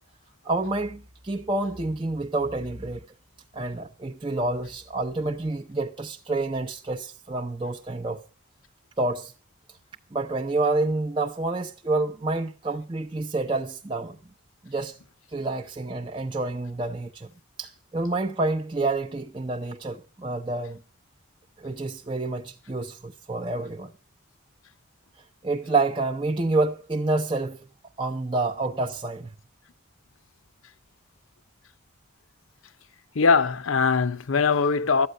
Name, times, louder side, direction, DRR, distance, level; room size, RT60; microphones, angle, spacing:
voice 1, 0.4-3.0 3.5-8.2 9.0-9.3 10.1-14.2 14.6-15.0 15.3-17.3 17.6-20.8 21.6-23.9 25.4-27.6 28.0-29.3, right 2 dB, 25° right, 0.6 m, -28 dB
voice 2, 33.1-35.1, left 5 dB, 80° left, 0.7 m, -21 dB
12.5 x 9.0 x 6.4 m
head